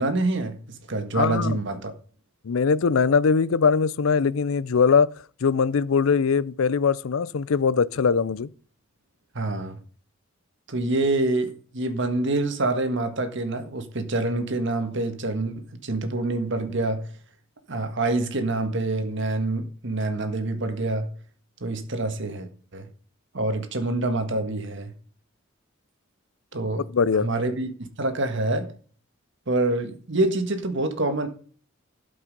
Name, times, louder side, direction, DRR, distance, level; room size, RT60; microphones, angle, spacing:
voice 1, 0.0-1.9 9.3-9.8 10.7-17.1 17.7-21.1 21.6-22.9 23.3-24.9 26.5-26.9 27.2-28.7 29.5-31.3, right 2 dB, 65° right, 1.6 m, -26 dB
voice 2, 1.1-1.6 2.4-5.1 5.4-8.5 26.9-27.3, left 5 dB, 85° left, 0.5 m, -21 dB
12.0 x 5.5 x 5.3 m
head